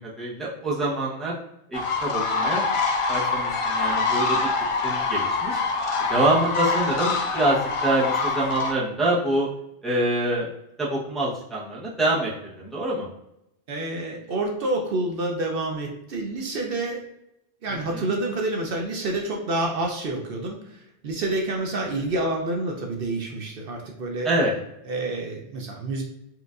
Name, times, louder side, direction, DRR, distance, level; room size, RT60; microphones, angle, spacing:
voice 1, 0.0-1.3 1.7-2.7 3.1-4.4 4.8-5.6 6.1-9.5 9.8-10.5 10.8-12.3 12.6-13.1 17.7-18.1 24.2-24.5, right 1 dB, ahead, -7 dB, 0.8 m, -25 dB
sound 1, 1.7-8.7, left 4 dB, 60° left, 0.3 m, -25 dB
voice 2, 13.7-17.1 17.6-24.3 24.9-26.0, right 2 dB, 65° right, 1 dB, 0.8 m, -28 dB
4.5 x 2.5 x 2.4 m, 0.82 s
omnidirectional pair, 1.1 m